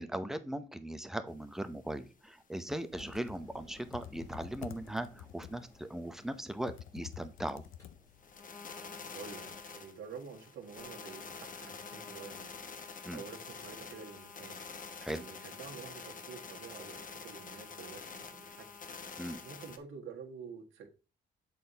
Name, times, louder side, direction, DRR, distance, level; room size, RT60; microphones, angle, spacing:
voice 1, 0.0-7.6 13.0-13.2 15.0-15.2 19.2-19.4, right 1 dB, ahead, 0.8 m, -39 dB
sound 1, 1.3-1.4 1.7-1.8 2.2-2.3 2.7-2.8 3.2-3.8 4.2-4.3 4.7-4.8 5.2-5.3 5.8-5.9 6.3-6.4 6.8-6.9 7.2-7.3 7.8-7.9 8.2-19.8, left 5 dB, 40° left, 1.0 m, -47 dB
Computer keyboard, 2.8-8.4, left 12 dB, 85° left, 0.6 m, -50 dB
Engine, 2.9-8.7, left 1 dB, 15° left, 2.5 m, -57 dB
voice 2, 9.1-14.6 15.1-18.8 19.4-20.9, right 6 dB, 75° right, 1.5 m, -49 dB
7.4 x 4.3 x 4.0 m
cardioid pair, 90°, 20 cm